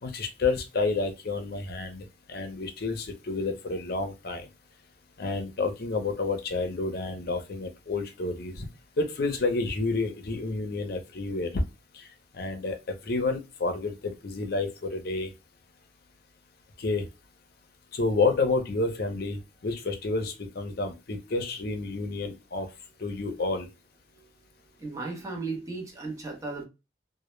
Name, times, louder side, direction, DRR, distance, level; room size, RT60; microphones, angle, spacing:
voice 1, 0.0-4.5 5.2-8.7 9.0-11.6 11.9-12.0 12.3-15.3 16.8-17.0 17.9-19.4 19.6-22.7 23.0-23.7, left 3 dB, 55° left, 0.5 m, -29 dB
voice 2, 24.8-26.6, right 3 dB, 15° right, 0.6 m, -35 dB
2.1 x 2.0 x 3.0 m
head